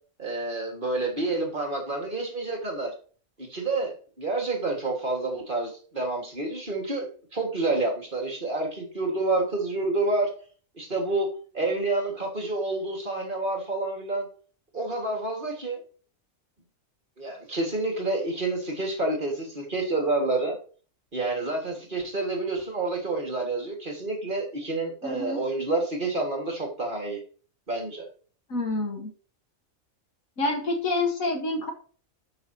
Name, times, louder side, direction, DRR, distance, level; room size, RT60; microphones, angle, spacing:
voice 1, 0.2-2.9 3.4-10.3 10.8-11.3 11.5-14.3 14.7-15.8 17.2-20.6 21.1-27.2 27.7-28.1, right 2 dB, 40° right, 1 dB, 2.1 m, -28 dB
voice 2, 25.0-25.4 28.5-29.1 30.4-31.7, left 2 dB, 75° left, 2 dB, 2.0 m, -27 dB
12.0 x 5.6 x 2.9 m, 0.41 s
omnidirectional pair, 1.4 m